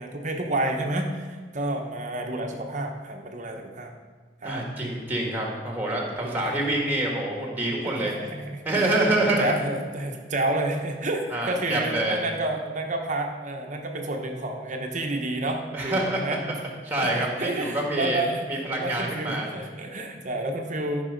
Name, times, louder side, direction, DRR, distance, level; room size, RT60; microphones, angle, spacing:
voice 1, 0.0-3.9 4.4-4.6 6.2-6.5 7.8-8.9 9.4-16.4 17.0-21.0, right 2 dB, 40° right, 3 dB, 1.0 m, -30 dB
voice 2, 4.4-8.1 8.6-9.6 11.3-12.2 15.7-16.5 16.8-19.5, right 1 dB, 10° right, 0 dB, 1.6 m, -26 dB
13.5 x 5.4 x 5.2 m, 1.6 s
head